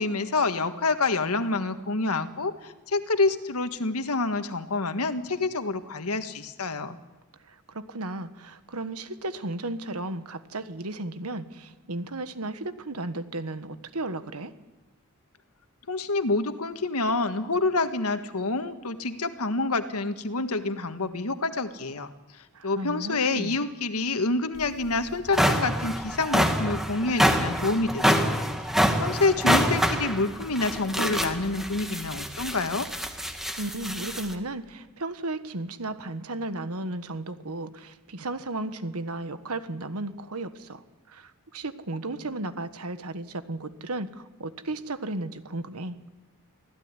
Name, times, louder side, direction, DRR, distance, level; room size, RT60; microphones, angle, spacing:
voice 1, 0.0-7.0 15.9-28.3 28.7-32.9, left 3 dB, 85° left, 9 dB, 1.6 m, -27 dB
voice 2, 7.5-14.5 22.5-23.6 33.6-46.0, right 2 dB, 85° right, 11 dB, 1.5 m, -34 dB
sound 1, 24.6-24.7 25.1-34.3, equal, ahead, 1.9 m, -26 dB
25.0 x 16.0 x 9.8 m, 1.2 s
head